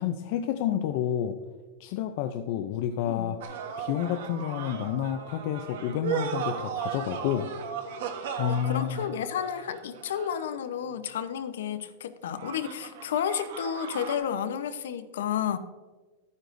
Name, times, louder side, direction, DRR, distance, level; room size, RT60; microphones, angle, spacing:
voice 1, 0.0-1.4 1.8-7.5 8.4-9.0, left 10 dB, 45° left, 8 dB, 0.4 m, -30 dB
sound 1, 3.4-10.7 12.3-14.2, right 7 dB, 60° right, 1.2 m, -36 dB
voice 2, 8.4-15.6, left 9 dB, 85° left, 11 dB, 0.8 m, -31 dB
12.5 x 9.5 x 2.6 m, 1.3 s
supercardioid pair, 175°, 0 cm